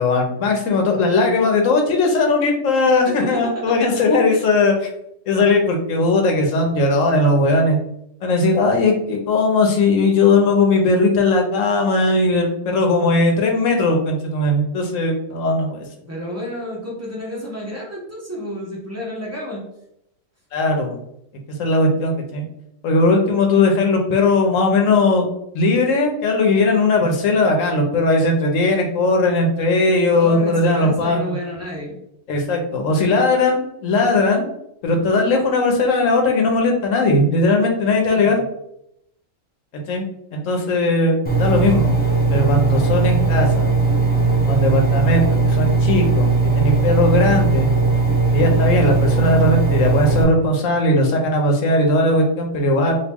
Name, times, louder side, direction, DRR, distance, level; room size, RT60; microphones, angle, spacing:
voice 1, 0.0-4.7 5.3-7.8 8.2-15.8 20.5-21.0 21.5-22.4 22.8-25.3 25.5-31.4 32.3-34.4 34.8-38.4 39.7-40.0 40.3-41.9 42.3-43.7 44.5-47.7 48.3-53.0, left 2 dB, 80° left, 2 dB, 1.1 m, -18 dB
voice 2, 3.1-4.5 16.1-19.6 30.1-32.0 38.1-38.4, equal, 15° right, -4 dB, 0.9 m, -31 dB
Engine, 41.2-50.2, right 3 dB, 10° left, 0.6 m, -18 dB
2.9 x 2.8 x 3.5 m, 0.78 s
omnidirectional pair, 1.3 m